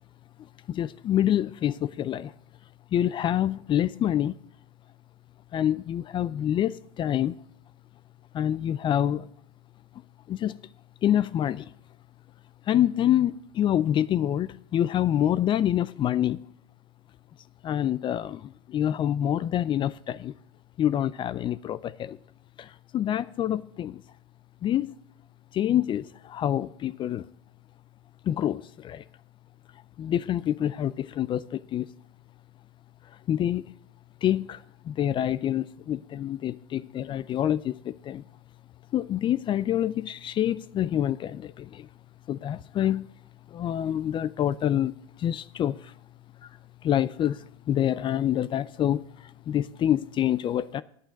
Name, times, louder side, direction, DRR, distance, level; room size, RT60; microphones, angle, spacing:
voice 1, 0.7-2.3 2.9-4.4 5.5-7.4 8.3-9.3 10.3-10.5 11.0-11.7 12.7-16.4 17.6-20.3 20.8-22.2 22.6-24.0 24.6-24.9 25.5-27.3 28.2-29.0 30.0-31.9 33.3-33.6 34.2-38.2 38.9-41.9 42.3-43.1 43.5-44.9 45.2-45.9 46.4-46.5 46.8-50.8, left 11 dB, 35° left, 0.4 m, -26 dB
9.2 x 8.7 x 5.2 m
supercardioid pair, 105°, 14 cm